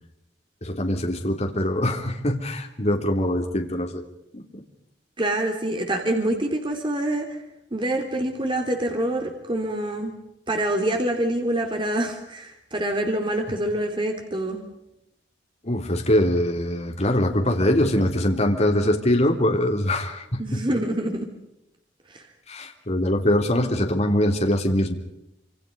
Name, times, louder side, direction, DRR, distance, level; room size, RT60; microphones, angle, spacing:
voice 1, 0.6-4.0 4.3-4.6 15.6-20.6 22.5-24.9, left 1 dB, 40° left, 2 dB, 3.5 m, -23 dB
voice 2, 5.2-7.4 7.7-10.1 10.5-14.6 20.4-21.3 22.1-22.2, right 1 dB, 30° right, 3 dB, 3.0 m, -26 dB
27.5 x 27.0 x 5.4 m, 0.85 s
head